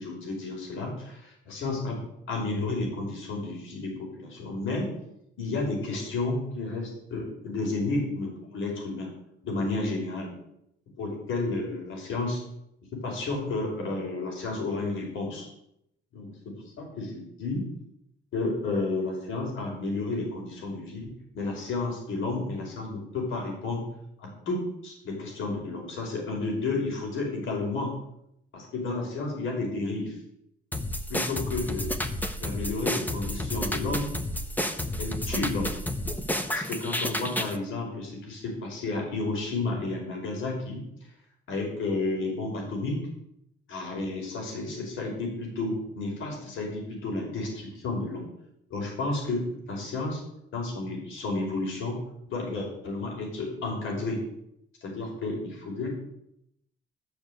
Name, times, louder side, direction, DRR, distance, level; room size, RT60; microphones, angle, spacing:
voice 1, 0.0-2.0 2.3-4.9 5.4-9.1 9.4-10.3 11.0-12.4 12.9-15.5 16.1-17.6 18.3-23.8 24.2-27.9 28.5-30.2 31.1-31.9 32.4-34.1 35.0-35.7 36.5-40.8 41.5-43.0 43.7-48.2 48.7-50.2 50.5-52.0 52.3-54.2 54.8-55.9, left 2 dB, 80° left, -1 dB, 5.4 m, -31 dB
sound 1, 30.7-37.6, left 1 dB, 10° left, 1.2 m, -31 dB
12.5 x 6.6 x 8.0 m, 0.79 s
cardioid pair, 90°, 20 cm